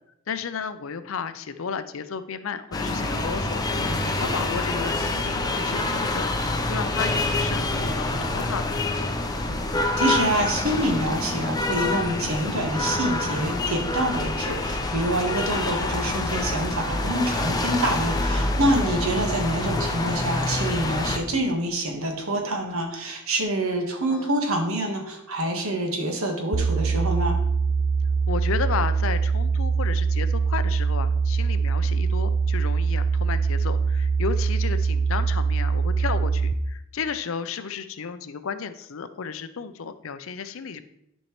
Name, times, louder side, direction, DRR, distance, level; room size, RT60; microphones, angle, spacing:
voice 1, 0.3-6.3 6.7-8.8 15.3-15.5 24.1-24.3 28.3-40.8, left 6 dB, 65° left, 11 dB, 0.5 m, -33 dB
sound 1, 2.7-21.2, left 2 dB, 20° left, 0.6 m, -26 dB
voice 2, 10.0-27.3, right 1 dB, 75° right, 3 dB, 1.5 m, -26 dB
sound 2, 26.5-36.5, right 5 dB, 30° right, 0.3 m, -23 dB
10.5 x 5.4 x 3.1 m, 0.77 s
head